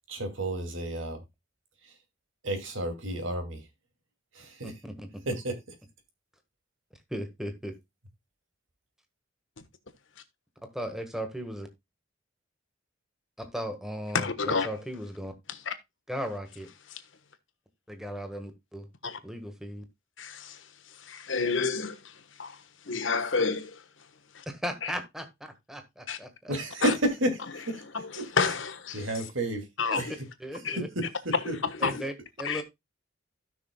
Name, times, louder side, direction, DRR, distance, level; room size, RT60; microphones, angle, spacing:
voice 1, 0.1-1.2 2.4-3.6 4.3-4.7 5.3-5.5 26.5-27.8 28.2-28.3 28.9-29.6 30.0-30.1 31.5-31.6, right 1 dB, 85° right, 2.6 m, -31 dB
voice 2, 4.6-5.2 7.1-7.8 10.6-11.7 13.4-15.3 16.1-16.7 17.9-18.9 19.2-19.8 24.4-26.5 29.9-30.0 30.4-30.9 31.8-32.6, equal, ahead, 1.5 m, -37 dB
voice 3, 14.1-14.7 15.7-15.8 19.0-19.2 20.2-20.6 21.0-22.6 22.8-23.8 24.3-24.4 24.8-24.9 26.1-26.2 26.8-26.9 27.9-29.0 29.8-30.1 30.6-30.8 31.8-32.0 32.4-32.6, left 5 dB, 75° left, 1.3 m, -30 dB
16.0 x 6.1 x 2.3 m
head